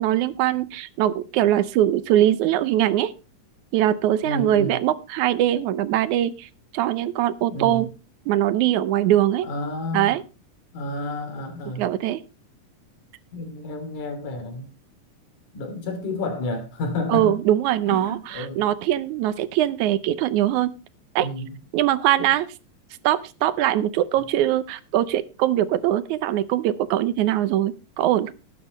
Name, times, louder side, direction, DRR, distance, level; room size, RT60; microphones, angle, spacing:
voice 1, 0.0-3.1 3.7-6.5 6.7-7.9 8.3-9.5 9.9-10.2 11.8-12.2 17.1-20.7 21.2-21.3 21.7-22.5 23.0-28.3, right 12 dB, 80° right, 14 dB, 2.1 m, -22 dB
voice 2, 4.2-4.8 7.5-7.8 9.4-10.1 10.7-11.8 13.3-14.7 15.5-17.3 17.9-18.7 21.2-21.5 22.2-22.3, left 2 dB, 75° left, 5 dB, 4.2 m, -30 dB
19.0 x 9.5 x 3.1 m, 0.31 s
omnidirectional pair, 3.5 m